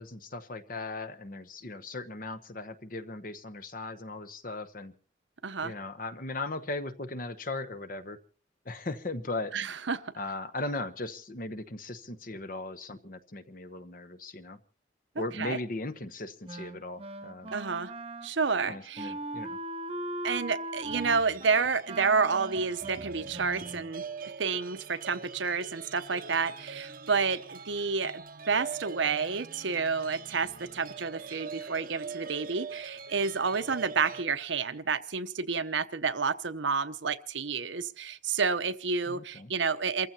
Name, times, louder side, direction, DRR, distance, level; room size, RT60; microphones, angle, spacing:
voice 1, 0.0-4.9 5.6-8.2 8.6-9.5 10.1-14.6 15.1-17.5 18.7-19.6 39.1-39.5, left 2 dB, 45° left, 11 dB, 1.0 m, -38 dB
voice 2, 5.4-5.7 9.5-10.0 15.4-15.6 17.5-17.9 18.2-19.1 20.2-24.0 24.4-40.1, right 5 dB, 80° right, 10 dB, 0.9 m, -30 dB
Wind instrument woodwind instrument, 16.5-23.9, right 1 dB, 30° right, 1.0 m, -40 dB
sound 1, 20.8-34.3, right 5 dB, 50° right, 0.8 m, -43 dB
28.5 x 15.0 x 2.9 m, 0.38 s
head